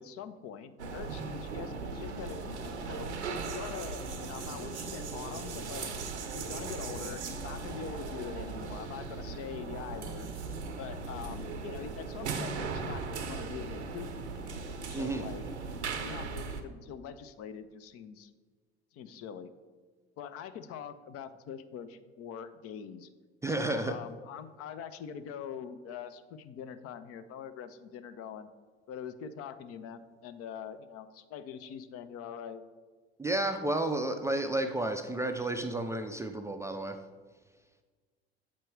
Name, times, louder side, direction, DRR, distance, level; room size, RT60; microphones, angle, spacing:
voice 1, 0.0-2.5 2.8-5.9 6.3-10.3 10.8-15.5 16.0-18.3 18.9-19.5 20.2-23.1 23.4-28.5 28.9-32.6, left 8 dB, 45° left, 12 dB, 0.5 m, -44 dB
sound 1, 0.8-16.6, right 4 dB, 85° right, 0.7 m, -38 dB
voice 2, 14.9-15.3 23.4-23.9 33.2-37.0, right 2 dB, 10° right, 5 dB, 0.4 m, -31 dB
7.2 x 4.5 x 4.6 m, 1.4 s
hypercardioid pair, 65°, 33 cm